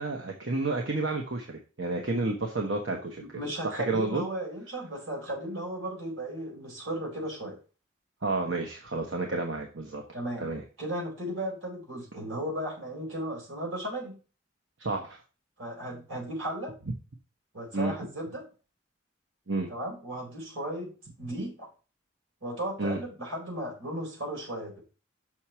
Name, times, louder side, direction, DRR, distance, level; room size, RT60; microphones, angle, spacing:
voice 1, 0.0-4.2 8.2-10.0 10.4-10.6 14.8-15.2 17.7-17.9 19.5-19.7 22.8-23.0, right 3 dB, 70° right, 2 dB, 1.1 m, -31 dB
voice 2, 3.2-7.6 9.3-9.4 10.1-10.5 10.8-14.2 15.6-16.7 17.5-18.5 19.7-21.7 22.4-24.8, right 1 dB, 90° right, -2 dB, 4.5 m, -35 dB
6.6 x 5.9 x 4.3 m, 0.35 s
head